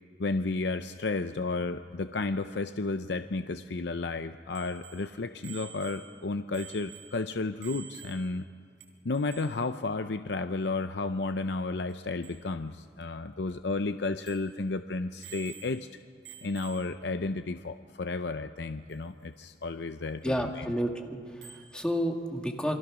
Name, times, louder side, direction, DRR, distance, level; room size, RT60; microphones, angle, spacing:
voice 1, 0.2-8.5 9.0-15.9 16.4-20.7, left 3 dB, 70° left, 9 dB, 0.6 m, -32 dB
Bicycle bell, 4.5-8.5 8.8-8.9 9.1-9.7 11.9-12.0 12.2-12.4 13.0-13.1 13.5-13.6 14.2-14.6 15.2-15.9 16.2-17.0 18.9-19.0 21.4-21.8, right 9 dB, 90° right, 3.7 m, -49 dB
voice 2, 20.2-22.7, equal, 5° left, 3 dB, 1.9 m, -31 dB
28.0 x 23.0 x 6.2 m, 2.3 s
head